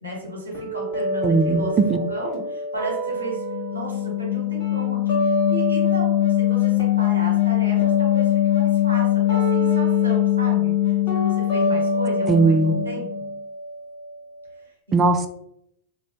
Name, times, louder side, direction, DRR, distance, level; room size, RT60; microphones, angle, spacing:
voice 1, 0.0-3.4 3.7-13.3 14.6-15.0, right 1 dB, 75° right, -2 dB, 1.2 m, -34 dB
sound 1, 0.5-6.5 6.8-14.6, equal, 40° left, 1.2 m, -29 dB
voice 2, 1.2-1.6 1.9-2.0 12.3-12.8 14.9-15.3, right 3 dB, 25° right, 7 dB, 0.4 m, -18 dB
sound 2, 3.2-13.3, left 18 dB, 65° left, 0.4 m, -22 dB
2.6 x 2.6 x 3.3 m, 0.75 s
figure-of-eight pair, 90°, 0 cm